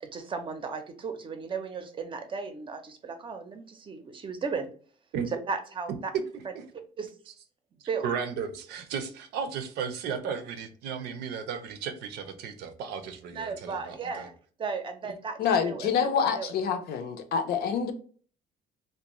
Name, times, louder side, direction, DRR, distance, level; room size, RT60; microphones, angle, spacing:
voice 1, 0.0-4.7 5.5-6.1 7.0-7.1 7.9-8.1 13.3-14.3 14.6-15.4 15.6-16.5, right 5 dB, 30° right, 0.5 m, -35 dB
voice 2, 8.0-14.3, right 6 dB, 80° right, 0.5 m, -35 dB
voice 3, 15.4-17.9, left 7 dB, 70° left, 0.5 m, -27 dB
2.5 x 2.1 x 2.9 m
cardioid pair, 110°, 17 cm